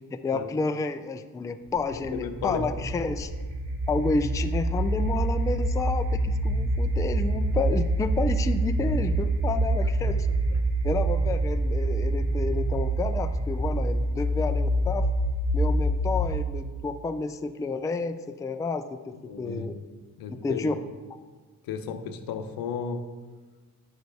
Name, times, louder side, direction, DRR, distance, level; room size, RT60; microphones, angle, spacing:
voice 1, 0.1-3.3 3.9-10.3 10.8-15.1 15.5-19.8 20.3-20.8, left 3 dB, 10° left, 8 dB, 0.3 m, -30 dB
sound 1, 1.7-16.5, right 1 dB, 65° right, 2.1 m, -26 dB
voice 2, 1.9-2.7 10.1-10.2 10.5-10.6 19.2-19.9 20.2-20.8 21.7-23.1, left 6 dB, 85° left, 8 dB, 0.7 m, -34 dB
9.3 x 6.8 x 3.3 m, 1.4 s
cardioid pair, 105°, 35 cm